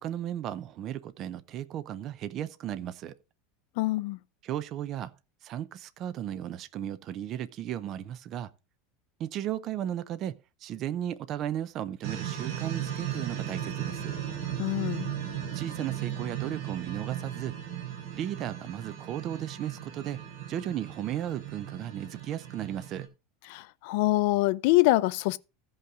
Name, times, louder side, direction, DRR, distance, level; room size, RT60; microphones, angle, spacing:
voice 1, 0.0-3.1 4.4-5.1 5.4-8.5 9.2-14.2 15.5-17.6 18.1-20.2 20.5-23.1, right 11 dB, 35° right, 0.6 m, -35 dB
voice 2, 3.8-4.2 14.6-15.2 23.5-25.4, left 19 dB, 60° left, 0.5 m, -25 dB
sound 1, 12.0-23.1, right 10 dB, 65° right, 3.4 m, -36 dB
15.0 x 5.6 x 3.7 m
supercardioid pair, 160°, 0 cm